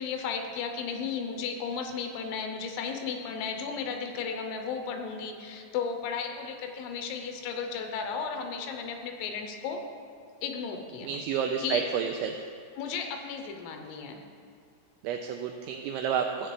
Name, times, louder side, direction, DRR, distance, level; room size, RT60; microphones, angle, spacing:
voice 1, 0.0-9.8 10.4-11.2 11.6-11.8 12.8-14.2, left 6 dB, 85° left, 4 dB, 3.2 m, -34 dB
voice 2, 11.0-12.4 15.0-16.5, right 7 dB, 90° right, 4 dB, 2.6 m, -30 dB
16.0 x 8.0 x 3.2 m, 2.2 s
omnidirectional pair, 5.9 m